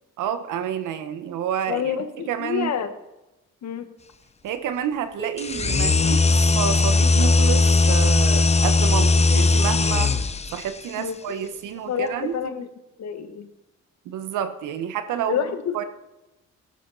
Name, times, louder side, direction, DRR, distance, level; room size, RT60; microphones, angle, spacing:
voice 1, 0.2-1.8 2.3-2.7 4.4-10.1 10.5-12.4 14.0-15.4 15.7-15.8, right 9 dB, 85° right, 10 dB, 1.4 m, -29 dB
voice 2, 1.7-2.9 3.6-3.9 11.0-11.2 11.8-12.7 13.0-13.5 15.3-15.8, left 8 dB, 60° left, 9 dB, 1.5 m, -28 dB
sound 1, 5.2-7.1, right 8 dB, 35° right, 3.8 m, -38 dB
sound 2, 5.4-10.6, left 3 dB, 20° left, 0.8 m, -18 dB
16.0 x 12.0 x 4.1 m, 0.99 s
cardioid pair, 90°, 30 cm